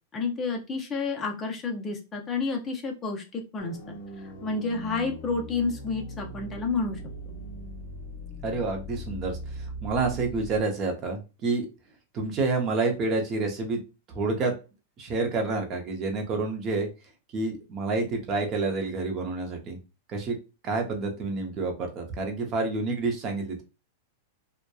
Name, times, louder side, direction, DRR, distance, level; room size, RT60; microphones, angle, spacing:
voice 1, 0.1-7.0, left 4 dB, 20° left, 2 dB, 0.6 m, -30 dB
sound 1, 3.6-10.6, equal, 60° left, 0.8 m, -40 dB
voice 2, 8.4-11.7 12.1-13.8 14.1-14.5 15.0-16.9 17.3-19.8 20.1-20.4 20.6-23.6, right 3 dB, 30° right, 3 dB, 0.7 m, -28 dB
2.8 x 2.1 x 2.2 m, 0.30 s
supercardioid pair, 150°, 0 cm